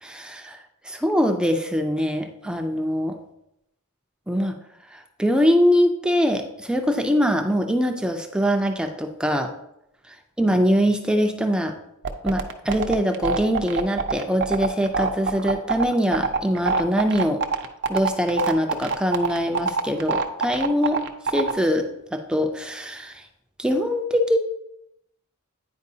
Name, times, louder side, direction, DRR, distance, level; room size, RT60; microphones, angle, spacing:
voice 1, 0.0-0.6 0.8-3.2 4.3-4.5 4.9-9.5 10.4-11.7 12.2-17.4 17.9-21.0 21.3-23.2 23.6-24.4, equal, 5° right, 4 dB, 0.4 m, -23 dB
sound 1, 12.0-21.5, right 5 dB, 55° right, 0.6 m, -24 dB
9.5 x 4.5 x 2.7 m, 0.81 s
head